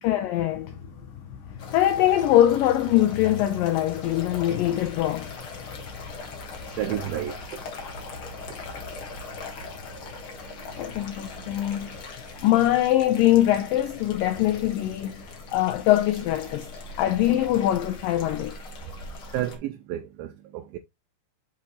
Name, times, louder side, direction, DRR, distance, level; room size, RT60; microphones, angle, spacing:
voice 1, 0.0-0.8 1.3-5.4 10.8-12.0 12.4-16.7 17.0-18.6, left 13 dB, 80° left, 2.0 m, -23 dB
sound 1, 1.6-19.6, left 3 dB, 60° left, 1.3 m, -40 dB
voice 2, 6.8-7.3 19.3-20.3 20.5-20.8, right 12 dB, 90° right, 2.1 m, -30 dB
6.2 x 5.9 x 3.0 m
omnidirectional pair, 4.7 m